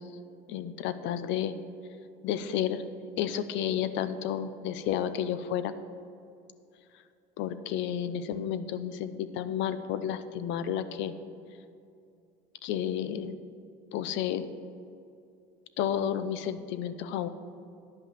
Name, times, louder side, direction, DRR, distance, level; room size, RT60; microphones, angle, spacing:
voice 1, 0.5-1.5 2.2-2.8 3.2-5.7 7.4-11.1 12.6-13.3 13.9-14.5 15.8-17.3, left 9 dB, 65° left, 12 dB, 0.7 m, -31 dB
10.5 x 5.6 x 7.4 m, 2.6 s
supercardioid pair, 90°, 20 cm